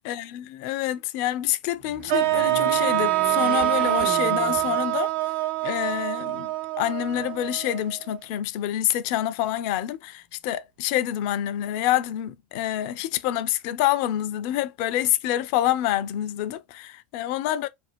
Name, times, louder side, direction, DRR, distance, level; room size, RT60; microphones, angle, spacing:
voice 1, 0.0-5.1 5.6-6.5 6.8-17.7, left 13 dB, 50° left, 0.3 m, -27 dB
sound 1, 1.8-5.4 5.9-6.0 7.0-7.8, right 5 dB, 75° right, 0.9 m, -36 dB
sound 2, 2.1-8.2, right 16 dB, 50° right, 0.3 m, -25 dB
2.5 x 2.4 x 3.2 m
figure-of-eight pair, 80°, 6 cm